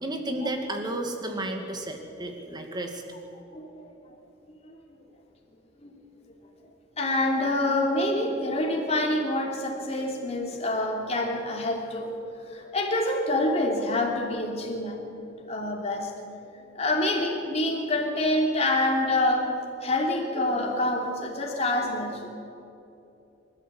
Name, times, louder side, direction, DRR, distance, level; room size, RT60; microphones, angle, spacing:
voice 1, 0.0-3.0, right 1 dB, 20° right, 4 dB, 2.3 m, -32 dB
voice 2, 3.5-3.9 4.6-4.7 5.8-6.0 7.0-12.1 12.5-15.0 15.5-16.1 16.7-22.3, left 1 dB, 35° left, 0 dB, 3.2 m, -26 dB
25.0 x 13.0 x 8.4 m, 2.8 s
head